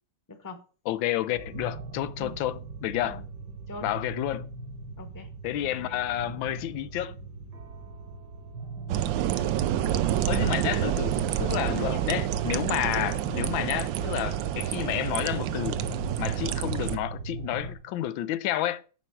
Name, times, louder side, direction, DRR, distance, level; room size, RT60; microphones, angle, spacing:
voice 1, 0.3-0.6 2.2-2.3 3.1-3.2 3.7-3.9 5.0-5.3 8.8-9.7 11.9-12.0 12.9-13.2, left 2 dB, 15° left, 0.8 m, -43 dB
voice 2, 0.9-3.2 3.8-4.5 5.4-7.2 10.3-15.8 16.2-18.8, left 13 dB, 85° left, 1.3 m, -30 dB
sound 1, 1.3-17.7, right 3 dB, 60° right, 1.8 m, -40 dB
sound 2, 8.9-17.0, right 11 dB, 80° right, 1.3 m, -28 dB
10.0 x 4.5 x 4.6 m
omnidirectional pair, 2.1 m